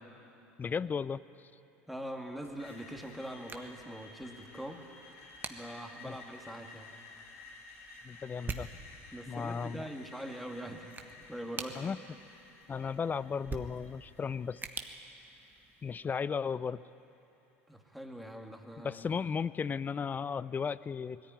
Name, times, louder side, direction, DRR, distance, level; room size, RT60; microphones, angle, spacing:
voice 1, 0.6-1.2 6.0-6.2 8.0-8.7 9.3-9.9 11.8-12.0 12.7-14.6 15.8-16.8 18.8-21.2, left 6 dB, 25° left, 19 dB, 0.5 m, -35 dB
voice 2, 1.9-4.8 5.5-6.9 9.1-10.9 11.3-11.9 17.7-19.2, equal, ahead, 2 dB, 2.4 m, -43 dB
sound 1, 2.4-16.0, right 4 dB, 25° right, 1.5 m, -48 dB
Screech, 2.6-16.5, left 3 dB, 80° left, 4.5 m, -54 dB
20.5 x 14.5 x 9.6 m, 2.9 s
hypercardioid pair, 80°, 7 cm